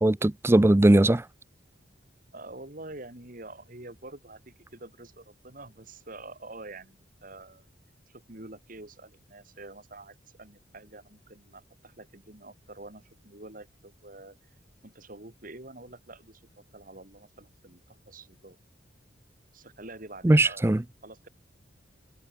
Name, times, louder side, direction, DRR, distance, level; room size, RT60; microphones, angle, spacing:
voice 1, 0.0-1.2 20.2-20.8, right 1 dB, 15° right, 0.4 m, -19 dB
voice 2, 2.3-7.7 8.1-14.4 14.8-18.6 19.5-20.7 21.0-21.3, right 2 dB, 45° right, 3.5 m, -47 dB
head